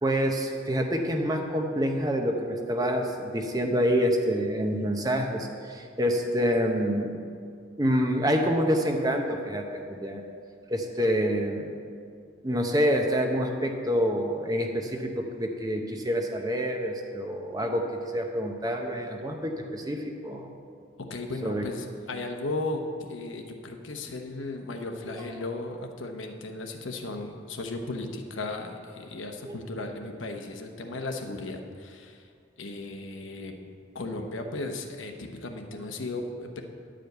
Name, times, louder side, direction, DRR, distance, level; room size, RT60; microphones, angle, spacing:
voice 1, 0.0-7.2 7.8-10.3 10.7-11.7 12.4-20.5 21.4-21.7 29.4-29.6, equal, 20° right, 3 dB, 0.7 m, -27 dB
voice 2, 21.1-32.3 32.6-33.5 33.9-36.6, left 2 dB, 80° left, 3 dB, 1.0 m, -35 dB
10.5 x 5.1 x 7.9 m, 2.2 s
head